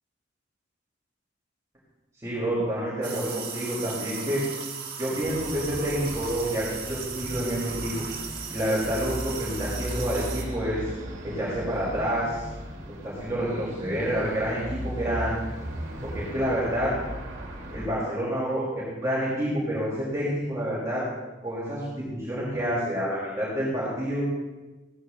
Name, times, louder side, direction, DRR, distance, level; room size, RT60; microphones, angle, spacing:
voice 1, 2.2-4.4 5.0-7.9 8.5-10.9 11.2-12.4 13.0-15.3 16.0-16.9 17.7-21.0 21.4-24.3, equal, 15° right, -8 dB, 3.9 m, -28 dB
sound 1, 3.0-10.4, right 6 dB, 50° right, 2.0 m, -37 dB
sound 2, 5.2-17.9, equal, 80° right, 2.3 m, -37 dB
17.0 x 14.0 x 2.8 m, 1.1 s
head